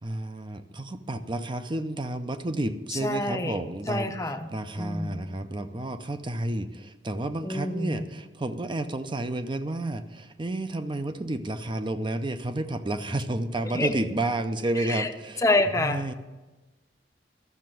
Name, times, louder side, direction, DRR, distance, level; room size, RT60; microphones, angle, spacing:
voice 1, 0.0-15.4 15.7-16.1, right 1 dB, 25° right, 9 dB, 0.6 m, -31 dB
voice 2, 2.9-3.6 3.9-4.5 4.8-5.1 7.4-8.0 13.7-14.0 14.8-15.1 15.4-16.1, left 2 dB, 20° left, 5 dB, 0.7 m, -27 dB
12.5 x 6.8 x 7.6 m, 1.1 s
head